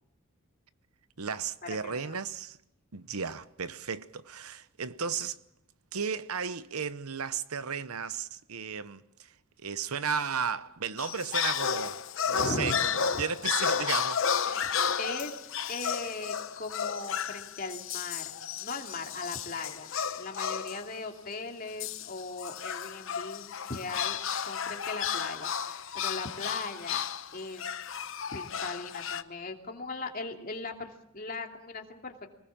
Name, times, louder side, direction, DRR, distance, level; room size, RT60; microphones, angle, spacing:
voice 1, 1.2-2.6 2.9-5.4 5.9-14.4, right 6 dB, 85° right, 1.0 m, -34 dB
voice 2, 1.8-2.2 12.3-12.8 13.1-13.2 14.5-14.7 15.0-19.9 20.2-24.2 24.4-27.0 27.3-27.6 28.3-32.3, left 3 dB, 40° left, 2.7 m, -39 dB
sound 1, 11.0-20.9 21.8-29.2, left 7 dB, 65° left, 0.9 m, -33 dB
25.5 x 19.5 x 7.4 m
head